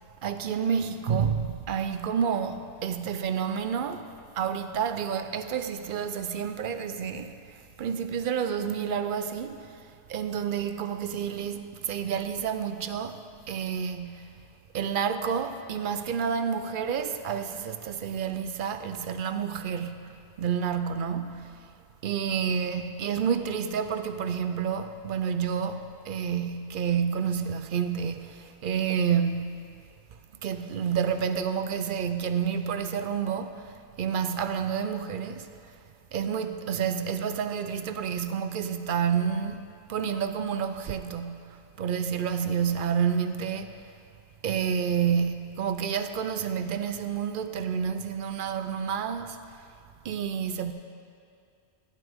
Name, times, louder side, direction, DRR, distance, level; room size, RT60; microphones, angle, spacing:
voice 1, 0.2-7.4 7.8-9.7 10.1-13.2 13.5-14.2 14.7-20.0 20.4-21.6 22.0-29.7 30.4-35.5 36.1-43.8 44.4-49.4 50.0-50.7, right 7 dB, 55° right, 0.7 m, -29 dB
13.0 x 11.0 x 3.5 m
omnidirectional pair, 1.1 m